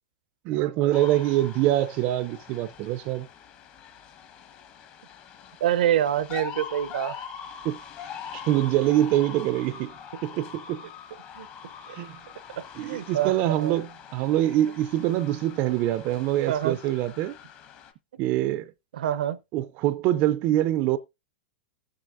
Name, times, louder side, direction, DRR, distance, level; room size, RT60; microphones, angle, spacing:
voice 1, 0.4-3.3 7.6-7.8 8.3-9.9 10.2-10.8 11.9-12.2 12.8-17.3 18.2-18.7 19.5-21.0, right 14 dB, 35° right, 0.4 m, -24 dB
sound 1, 0.9-17.9, left 8 dB, 35° left, 1.1 m, -43 dB
voice 2, 5.6-7.2 11.3-11.5 11.9-12.0 12.8-13.7 16.5-16.8 18.9-19.4, right 11 dB, 80° right, 0.6 m, -26 dB
17.0 x 7.5 x 2.5 m
supercardioid pair, 150°, 5 cm